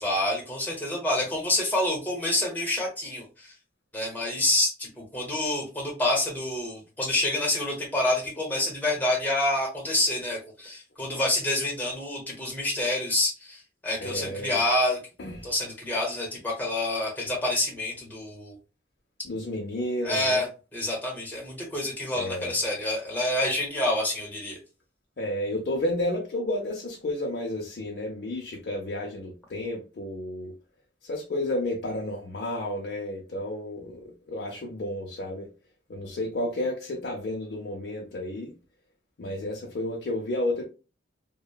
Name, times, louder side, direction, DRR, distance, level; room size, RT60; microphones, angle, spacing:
voice 1, 0.0-3.5 3.9-15.0 15.4-18.6 20.0-20.5 20.7-24.6, left 1 dB, 10° left, 0.8 m, -27 dB
voice 2, 14.0-14.6 15.2-15.5 19.2-20.4 22.1-22.6 25.2-30.5 31.0-35.5 35.9-38.5 39.2-40.7, left 1 dB, 55° left, 0.5 m, -31 dB
2.9 x 2.0 x 2.2 m
head